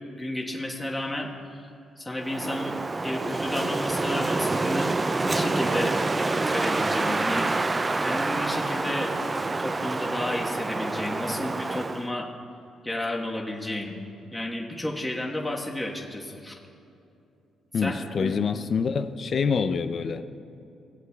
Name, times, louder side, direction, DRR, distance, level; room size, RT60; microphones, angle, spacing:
voice 1, 0.1-1.6 2.0-2.8 3.0-4.9 5.2-6.0 6.2-9.1 9.6-12.3 12.8-13.9 14.3-16.5 17.8-18.3, left 1 dB, 10° left, -2 dB, 1.3 m, -32 dB
Wind, 2.2-12.1, right 3 dB, 25° right, 0.3 m, -27 dB
voice 2, 17.7-20.2, left 5 dB, 50° left, 10 dB, 0.5 m, -26 dB
18.5 x 7.9 x 2.3 m, 2.7 s
cardioid pair, 90°, 0 cm